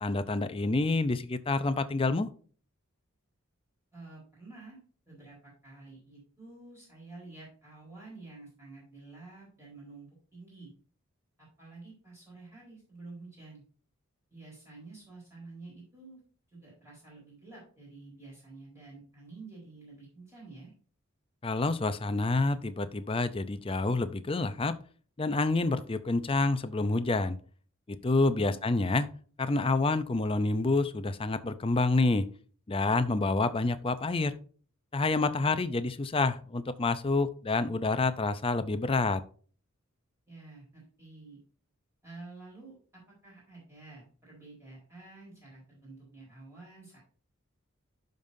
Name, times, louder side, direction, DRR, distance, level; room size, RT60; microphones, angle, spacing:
voice 1, 0.0-2.3 21.4-24.8 25.2-27.4 27.9-29.1 29.4-32.3 32.7-34.4 34.9-39.2, left 3 dB, 25° left, 12 dB, 0.5 m, -28 dB
voice 2, 3.9-4.8 5.1-10.7 11.4-13.6 14.3-16.2 16.5-20.7 28.3-28.6 40.3-41.4 42.0-47.0, right 3 dB, 15° right, -6 dB, 4.2 m, -50 dB
11.5 x 5.4 x 2.7 m, 0.42 s
head